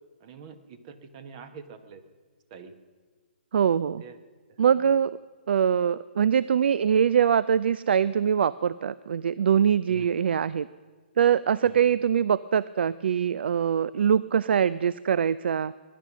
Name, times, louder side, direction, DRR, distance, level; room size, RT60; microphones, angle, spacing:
voice 1, 0.2-2.0 2.5-2.7 4.0-4.2 4.7-4.9 9.9-10.1 11.6-11.8, right 5 dB, 35° right, 10 dB, 1.2 m, -45 dB
voice 2, 3.5-4.0 4.6-5.2 5.5-10.7 11.2-15.7, right 8 dB, 65° right, 19 dB, 0.3 m, -23 dB
19.5 x 11.0 x 6.2 m, 1.4 s
hypercardioid pair, 150°, 6 cm